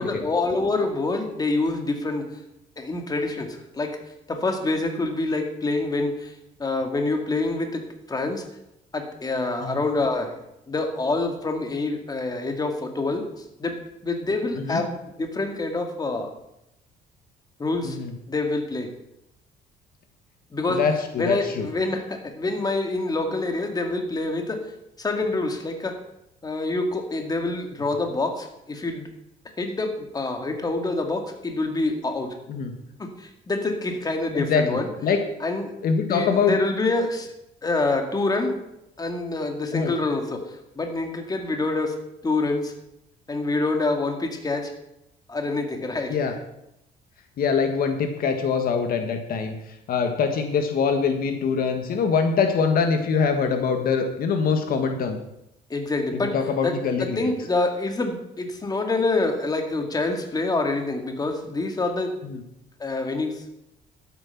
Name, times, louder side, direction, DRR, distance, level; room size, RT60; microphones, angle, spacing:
voice 1, 0.0-2.3 2.8-4.0 4.3-6.3 6.6-8.4 8.9-10.4 10.7-16.3 17.6-18.0 18.3-18.9 20.5-20.8 21.2-24.6 25.0-26.0 26.4-29.1 29.6-32.4 33.0-34.9 35.4-35.7 36.1-37.3 37.6-38.6 39.0-42.0 42.2-42.7 43.3-44.7 45.3-46.2 55.7-56.4 56.6-62.2 62.8-63.4, left 2 dB, 20° left, 4 dB, 2.1 m, -26 dB
voice 2, 20.7-21.7 32.5-32.7 34.3-35.2 35.8-36.6 39.7-39.9 46.1-46.3 47.4-55.2 56.1-57.2 62.2-62.4, left 5 dB, 60° left, 6 dB, 1.5 m, -24 dB
12.5 x 9.1 x 5.8 m, 0.84 s
cardioid pair, 110°, 17 cm